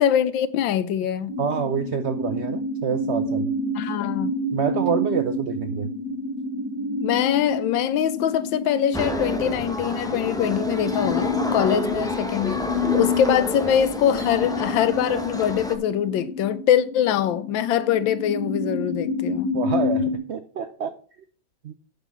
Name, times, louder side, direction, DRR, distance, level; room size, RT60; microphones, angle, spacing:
voice 1, 0.0-1.3 3.7-4.3 7.0-12.6 12.9-19.5, left 10 dB, 85° left, 1.5 m, -23 dB
sound 1, 1.3-20.2, left 2 dB, 35° right, 3.7 m, -28 dB
voice 2, 1.4-3.5 4.5-5.9 19.5-20.9 21.6-21.7, right 7 dB, 70° right, 0.6 m, -27 dB
sound 2, 8.9-15.7, equal, 5° left, 0.7 m, -30 dB
8.5 x 6.1 x 5.5 m
omnidirectional pair, 2.0 m